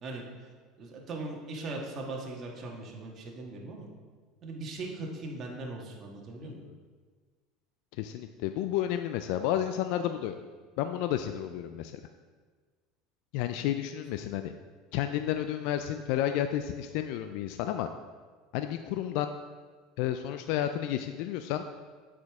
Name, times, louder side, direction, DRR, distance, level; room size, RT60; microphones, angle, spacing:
voice 1, 0.8-3.9 4.4-6.6, right 2 dB, 40° right, -1 dB, 1.5 m, -39 dB
voice 2, 6.4-6.7 8.0-10.4 10.8-12.0 13.3-14.5 14.9-17.9 18.5-19.3 20.0-21.6, left 11 dB, 70° left, 8 dB, 0.3 m, -31 dB
8.0 x 5.0 x 3.6 m, 1.5 s
supercardioid pair, 95°, 0 cm